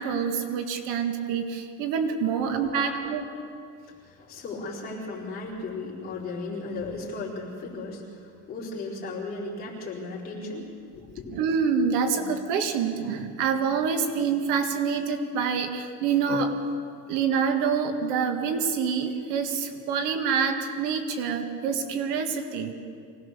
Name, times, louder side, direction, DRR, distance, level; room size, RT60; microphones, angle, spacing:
voice 1, 0.0-3.3 11.3-16.6 17.1-22.7, right 6 dB, 55° right, 6 dB, 1.8 m, -26 dB
voice 2, 2.7-3.1 3.8-11.3, left 3 dB, 25° left, -4 dB, 4.5 m, -36 dB
24.5 x 18.5 x 6.8 m, 2.3 s
cardioid pair, 175°, 36 cm